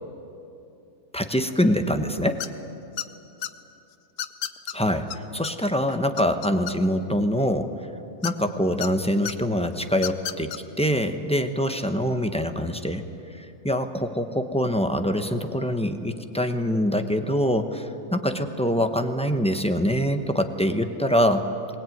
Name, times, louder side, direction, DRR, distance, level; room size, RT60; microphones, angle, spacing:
voice 1, 1.1-2.4 4.7-7.7 8.2-13.0 13.4-21.4, equal, 5° left, 7 dB, 0.9 m, -24 dB
sound 1, 2.4-2.7 3.0-3.5 4.2-4.7 5.1-5.2 5.4-5.5 5.9-7.0 8.2-8.9 9.2-9.3 9.9-10.6, left 10 dB, 80° left, 1.3 m, -31 dB
21.0 x 20.5 x 9.3 m, 2.7 s
omnidirectional pair, 1.6 m